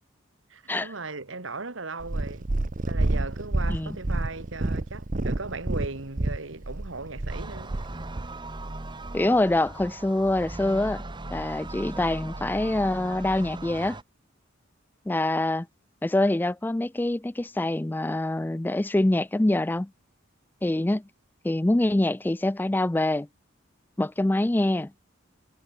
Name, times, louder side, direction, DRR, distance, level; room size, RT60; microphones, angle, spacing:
voice 1, 0.5-2.5 2.9-7.8, right 3 dB, 70° right, 1.9 m, -37 dB
Purr, 2.0-8.3 9.1-9.2, right 2 dB, 40° right, 0.9 m, -29 dB
sound 1, 7.3-14.0, right 2 dB, 25° right, 1.2 m, -38 dB
voice 2, 9.1-11.0 11.3-14.0 15.1-15.7 16.0-19.9 20.6-21.0 21.4-23.3 24.0-24.9, left 1 dB, 10° left, 0.3 m, -25 dB
head